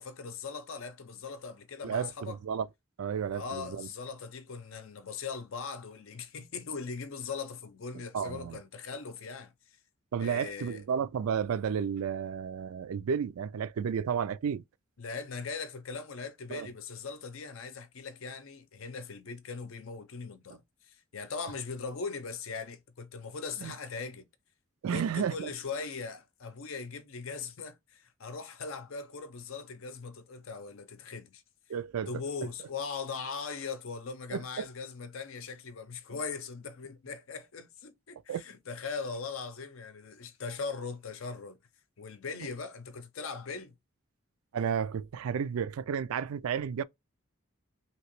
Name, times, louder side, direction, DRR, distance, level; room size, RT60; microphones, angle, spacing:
voice 1, 0.0-2.4 3.3-9.5 10.2-10.8 15.0-20.6 20.9-24.3 24.9-31.4 32.1-41.6 42.0-43.7, left 5 dB, 70° left, 0.6 m, -40 dB
voice 2, 1.8-2.7 3.0-3.9 8.1-8.6 10.1-14.6 16.5-16.7 23.6-23.7 24.8-25.5 31.7-32.1 34.3-34.6 38.3-38.4 44.5-46.8, right 7 dB, 80° right, 0.4 m, -32 dB
2.9 x 2.8 x 3.0 m
head